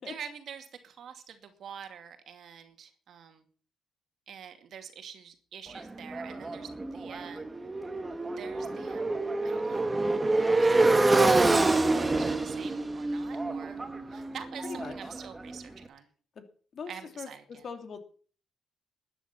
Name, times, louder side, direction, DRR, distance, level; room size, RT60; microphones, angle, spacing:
voice 1, 0.1-3.4 4.3-7.5 8.3-9.9 10.6-13.8 14.1-16.1 16.9-17.6, right 7 dB, 65° right, 7 dB, 2.4 m, -46 dB
Motorcycle, 5.7-15.6, right 2 dB, 20° right, 1.4 m, -27 dB
voice 2, 14.6-14.9 16.4-16.5 16.7-17.3 17.6-18.0, left 5 dB, 55° left, 6 dB, 2.9 m, -40 dB
13.5 x 10.0 x 5.9 m, 0.42 s
cardioid pair, 90°, 0 cm